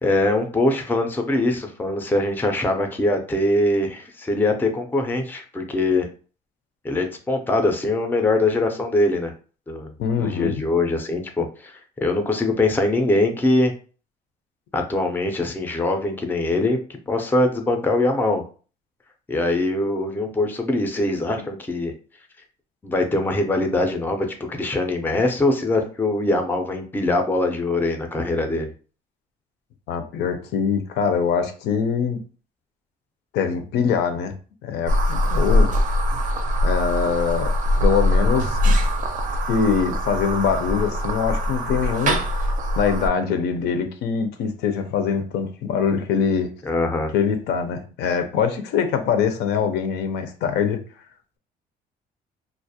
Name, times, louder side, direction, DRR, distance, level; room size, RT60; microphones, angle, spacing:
voice 1, 0.0-6.1 6.8-9.3 9.7-9.9 10.2-13.7 14.7-16.8 17.1-18.4 19.3-21.9 22.8-28.7 46.6-47.1, left 2 dB, 10° left, 0.4 m, -22 dB
voice 2, 10.0-10.6 29.9-32.2 33.3-34.3 34.6-35.8 36.6-37.5 37.8-38.8 39.5-46.5 47.1-50.8, left 6 dB, 80° left, 0.5 m, -23 dB
sound 1, 34.9-43.1, left 1 dB, 50° right, 0.5 m, -22 dB
2.4 x 2.0 x 2.7 m
cardioid pair, 110°, 17 cm